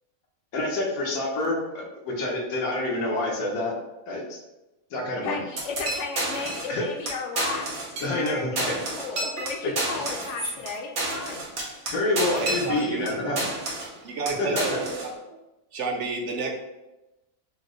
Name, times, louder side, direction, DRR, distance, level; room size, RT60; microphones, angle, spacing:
voice 1, 0.5-3.7 4.1-4.4 4.9-5.4 6.7-6.8 8.0-8.8 9.6-10.0 11.9-13.5 14.4-14.8, left 2 dB, 90° left, -1 dB, 1.4 m, -27 dB
voice 2, 5.2-11.4, left 5 dB, 65° left, 3 dB, 0.8 m, -35 dB
sound 1, 5.6-6.8 7.1-7.2 7.4-8.3 8.6-13.1 13.4-14.0 14.3-15.1, right 2 dB, 85° right, 1.5 m, -30 dB
voice 3, 12.4-13.4 14.0-15.1 15.7-16.5, right 4 dB, 65° right, 2 dB, 0.8 m, -30 dB
5.1 x 2.1 x 3.7 m, 0.99 s
omnidirectional pair, 1.5 m